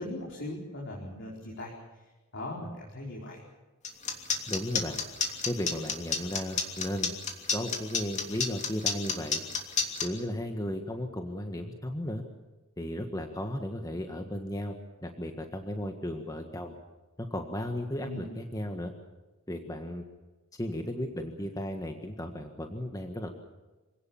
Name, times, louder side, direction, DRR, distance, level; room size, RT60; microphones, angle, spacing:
voice 1, 0.0-1.7 2.3-3.4 18.0-18.3, left 1 dB, 60° left, -3 dB, 4.6 m, -39 dB
sound 1, 3.8-10.1, left 5 dB, 35° left, 3.1 m, -29 dB
voice 2, 4.5-5.0 5.4-7.1 7.5-9.4 10.0-12.2 12.8-14.7 15.0-16.8 17.2-18.9 19.5-20.0 20.5-23.3, left 1 dB, 15° left, 4 dB, 1.6 m, -35 dB
26.5 x 18.0 x 7.2 m, 1.2 s
head